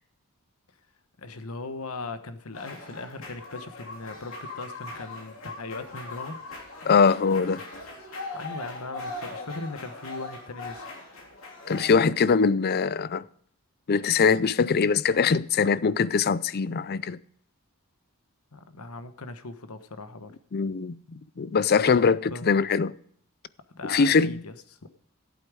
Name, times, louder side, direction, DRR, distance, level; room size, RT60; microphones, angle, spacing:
voice 1, 1.2-6.4 8.3-10.8 18.5-20.3 21.9-22.5 23.7-24.8, left 3 dB, 85° left, 1.1 m, -39 dB
sound 1, 2.5-11.9, left 2 dB, 65° left, 3.1 m, -40 dB
voice 2, 6.9-7.6 11.7-13.2 13.9-17.2 20.5-21.0 21.4-22.9 23.8-24.4, left 5 dB, 45° left, 0.4 m, -22 dB
15.0 x 8.5 x 4.8 m
head